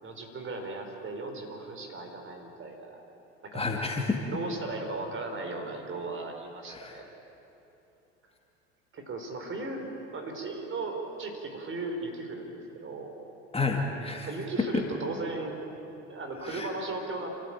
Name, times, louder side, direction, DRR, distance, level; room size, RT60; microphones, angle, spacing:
voice 1, 0.0-3.1 3.4-3.6 4.3-7.0 8.9-9.8 10.1-12.5 12.8-13.1 14.3-15.6 16.1-17.3, right 3 dB, 35° right, 4 dB, 4.4 m, -36 dB
voice 2, 3.5-4.2 6.7-7.0 13.5-14.3 14.7-14.8 16.4-16.7, left 3 dB, 15° left, 1 dB, 2.5 m, -30 dB
28.0 x 14.0 x 8.8 m, 3.0 s
hypercardioid pair, 75°, 35 cm